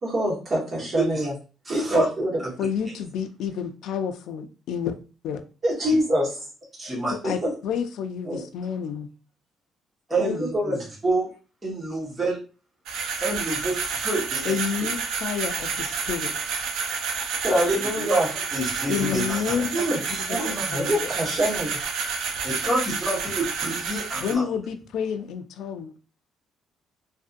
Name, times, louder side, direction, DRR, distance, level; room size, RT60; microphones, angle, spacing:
voice 1, 0.0-1.3 1.7-2.3 5.6-6.3 6.8-6.9 7.2-7.5 8.3-8.4 10.2-10.8 17.4-18.3 19.7-21.8, equal, 35° right, -4 dB, 1.3 m, -25 dB
voice 2, 1.0-1.3 1.6-2.1 5.9-6.0 6.8-7.4 10.1-11.3 11.6-12.4 13.2-14.5 14.8-14.9 18.0-18.2 18.5-19.9 22.4-24.5, right 2 dB, 15° right, -6 dB, 1.1 m, -28 dB
voice 3, 2.6-4.9 5.2-5.4 7.1-9.1 14.4-16.3 18.9-19.9 20.3-20.4 20.7-21.1 24.2-25.9, left 7 dB, 75° left, 8 dB, 0.3 m, -29 dB
sound 1, 12.9-24.3, right 5 dB, 90° right, 0.4 m, -30 dB
2.6 x 2.5 x 2.4 m, 0.35 s
cardioid pair, 145°, 0 cm